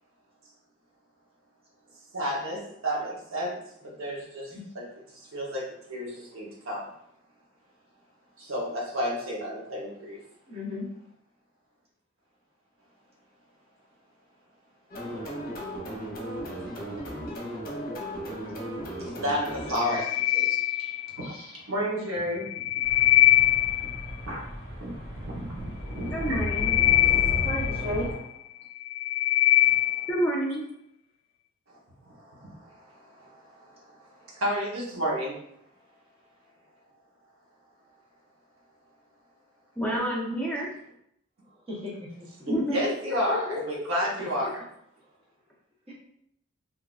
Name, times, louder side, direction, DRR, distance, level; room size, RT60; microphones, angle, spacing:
voice 1, 2.1-6.9 8.4-10.2 19.0-22.5 23.4-23.7 24.3-24.5 24.8-25.0 25.2-25.6 25.9-26.4 27.0-27.5 29.6-30.1 31.7-31.8 32.0-35.3 42.5-44.5, equal, 75° right, -3 dB, 1.0 m, -32 dB
voice 2, 10.5-10.9 27.4-28.1 41.7-42.1 45.9-46.0, left 1 dB, 30° right, -6 dB, 1.0 m, -33 dB
sound 1, 14.9-20.0, equal, 45° left, 0.8 m, -36 dB
sound 2, 19.7-21.4 22.3-24.1 26.1-28.2 28.7-30.2, left 14 dB, 70° left, 0.4 m, -23 dB
sound 3, 22.8-28.2, equal, 50° right, 1.5 m, -34 dB
voice 3, 26.1-26.7 30.1-30.6 39.8-40.7 42.5-43.8, equal, 5° left, -4 dB, 0.7 m, -29 dB
3.6 x 2.7 x 2.4 m, 0.75 s
head